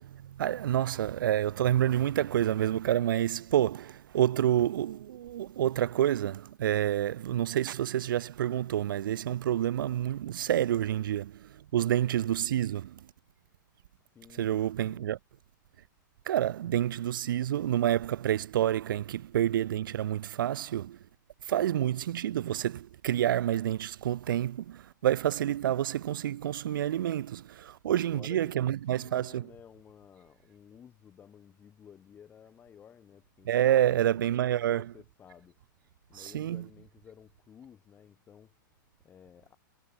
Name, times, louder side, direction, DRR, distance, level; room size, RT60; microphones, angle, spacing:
voice 1, 0.0-13.1 14.4-15.2 16.3-21.0 21.4-29.5 33.4-34.8 36.1-36.6, right 11 dB, 80° right, 0.5 m, -28 dB
voice 2, 14.0-14.5 14.8-15.2 28.1-39.6, left 8 dB, 15° left, 1.7 m, -55 dB
hypercardioid pair, 150°, 11 cm